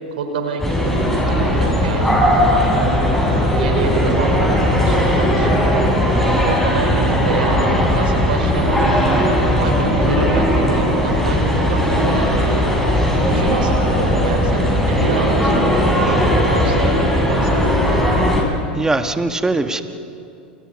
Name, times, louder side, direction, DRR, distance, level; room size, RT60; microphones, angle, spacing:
voice 1, 0.1-1.0 1.3-2.9 3.6-5.8 6.4-9.1 9.6-12.7 13.3-18.4, right 5 dB, 75° right, 5 dB, 4.6 m, -27 dB
sound 1, 0.6-18.4, equal, 5° left, 7.9 m, -17 dB
voice 2, 18.7-19.8, right 2 dB, 10° right, 8 dB, 1.7 m, -21 dB
29.5 x 28.5 x 5.5 m, 2.7 s
hypercardioid pair, 90°, 5 cm